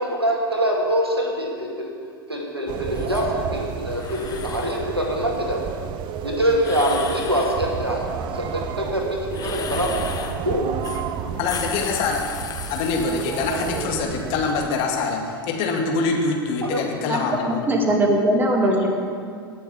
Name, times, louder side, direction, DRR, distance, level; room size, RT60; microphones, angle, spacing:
voice 1, 0.0-1.9 2.3-5.6 6.2-8.1 8.3-9.9 10.4-10.7 16.6-16.8, equal, 90° right, 0 dB, 2.2 m, -24 dB
sound 1, 2.7-14.7, right 7 dB, 40° right, 0.7 m, -32 dB
inflating a balloon then releasing the air, 3.0-3.3 3.9-4.8 6.6-7.6 9.3-10.4 10.8-11.1 11.3-13.9, left 7 dB, 30° left, 1.2 m, -34 dB
voice 2, 11.4-12.3 12.7-17.7 18.7-18.9, left 4 dB, 45° left, 2 dB, 2.1 m, -25 dB
voice 3, 17.5-18.9, right 1 dB, 15° right, 1 dB, 2.4 m, -20 dB
18.0 x 7.0 x 7.1 m, 2.2 s
figure-of-eight pair, 85°, 13 cm